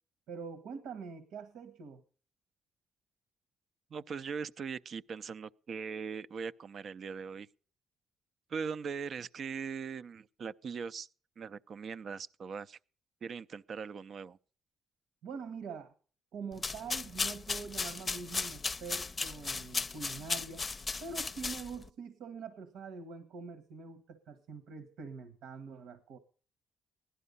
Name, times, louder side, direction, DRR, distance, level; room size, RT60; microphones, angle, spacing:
voice 1, 0.3-2.0 15.2-15.9 16.3-20.6 21.0-26.2, right 5 dB, 85° right, 1.5 m, -44 dB
voice 2, 3.9-7.5 8.5-11.1 11.4-12.8 13.2-14.4, right 6 dB, 55° right, 0.6 m, -40 dB
sound 1, 16.5-21.9, left 4 dB, 30° left, 0.6 m, -36 dB
16.5 x 11.5 x 5.4 m
cardioid pair, 90°, 0 cm